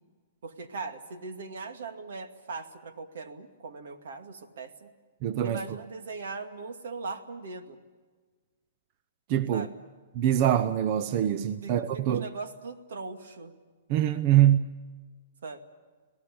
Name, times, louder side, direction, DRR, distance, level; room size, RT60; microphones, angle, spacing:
voice 1, 0.4-4.9 5.4-7.8 9.5-9.8 11.6-13.5 15.4-15.6, right 4 dB, 80° right, 2.3 m, -40 dB
voice 2, 5.2-5.6 9.3-9.7 10.1-12.3 13.9-14.7, right 11 dB, 40° right, 0.7 m, -24 dB
27.0 x 18.0 x 8.6 m
hypercardioid pair, 150°, 0 cm